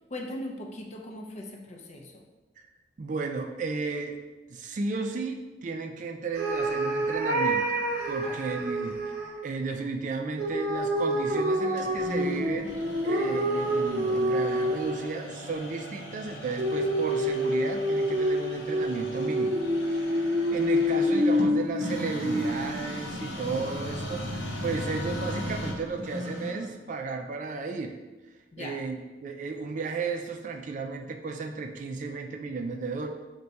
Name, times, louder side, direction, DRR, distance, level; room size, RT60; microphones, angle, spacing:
voice 1, 0.1-2.2 8.2-8.5 28.5-28.8, left 1 dB, 40° left, 1 dB, 0.5 m, -39 dB
voice 2, 3.0-4.2 4.5-7.7 8.1-9.0 9.4-12.7 13.0-19.6 19.9-28.0 28.6-33.1, right 4 dB, 45° right, 4 dB, 0.3 m, -34 dB
sound 1, 6.4-9.3 10.4-15.2 16.6-22.7, equal, 60° right, 0.7 m, -27 dB
sound 2, 11.8-26.8, equal, 80° left, 0.8 m, -37 dB
4.6 x 2.2 x 3.9 m, 1.2 s
head